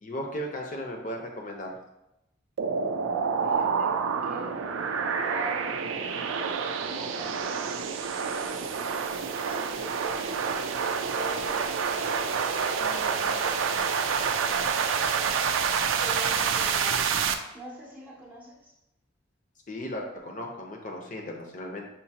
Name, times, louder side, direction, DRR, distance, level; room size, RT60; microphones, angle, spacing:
voice 1, 0.0-1.8 19.7-21.9, equal, 40° left, 1 dB, 0.7 m, -36 dB
sound 1, 2.6-17.3, right 6 dB, 85° right, 0.4 m, -28 dB
voice 2, 3.4-4.0 4.2-4.6 5.2-6.3 6.8-7.9 8.4-9.2 9.5-10.1 11.1-11.7 12.7-14.1 14.5-14.7 16.0-18.7, right 1 dB, 10° right, -5 dB, 0.7 m, -43 dB
5.8 x 2.7 x 2.8 m, 0.87 s
head